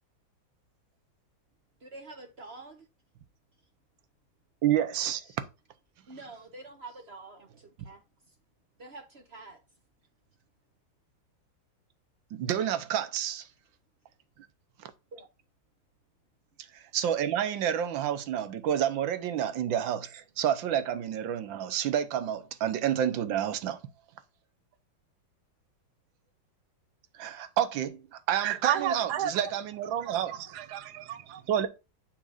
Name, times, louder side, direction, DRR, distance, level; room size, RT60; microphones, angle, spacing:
voice 1, 1.8-2.9 5.2-5.4 6.1-8.0 8.8-9.6 15.1-15.3, right 3 dB, 45° right, 1.0 m, -47 dB
voice 2, 4.6-5.2 12.3-13.5 14.8-14.9 16.7-23.8 27.2-28.0 28.3-30.3 31.5-31.7, right 10 dB, 85° right, 1.6 m, -29 dB
voice 3, 28.4-29.3 30.0-31.4, right 10 dB, 65° right, 1.1 m, -32 dB
7.3 x 5.7 x 2.5 m
omnidirectional pair, 2.0 m